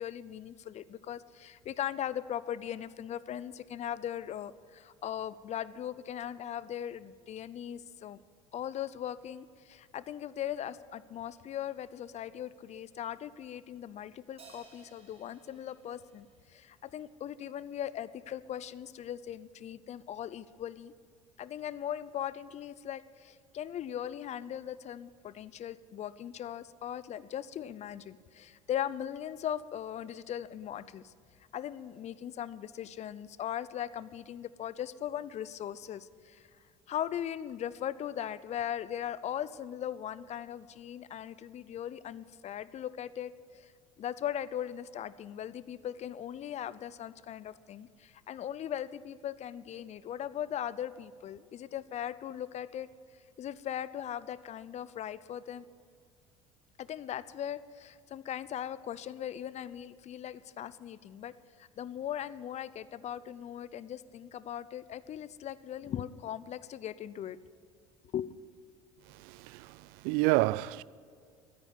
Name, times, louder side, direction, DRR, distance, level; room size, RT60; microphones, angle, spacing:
voice 1, 0.0-8.2 8.5-20.9 21.4-31.1 31.5-36.5 36.9-43.7 44.0-52.9 53.4-55.7 56.8-61.3 61.6-67.4 68.1-68.4, left 10 dB, 45° left, 0.6 m, -39 dB
Crash cymbal, 14.4-17.1, right 3 dB, 40° right, 4.6 m, -58 dB
voice 2, 69.0-70.8, right 19 dB, 65° right, 0.4 m, -30 dB
13.5 x 9.6 x 7.4 m
hypercardioid pair, 70°, 16 cm